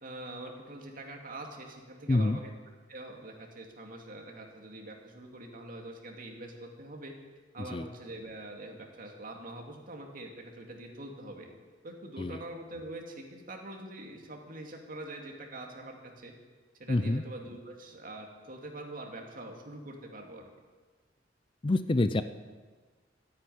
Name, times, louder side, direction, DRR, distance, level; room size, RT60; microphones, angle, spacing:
voice 1, 0.0-2.5 2.9-7.1 7.5-11.5 11.8-16.3 16.8-20.4, right 1 dB, 50° right, 1 dB, 2.4 m, -44 dB
voice 2, 2.1-2.4 7.6-7.9 12.2-12.4 16.9-17.2 21.6-22.2, left 2 dB, 30° left, 12 dB, 0.5 m, -27 dB
13.0 x 9.9 x 9.3 m, 1.4 s
head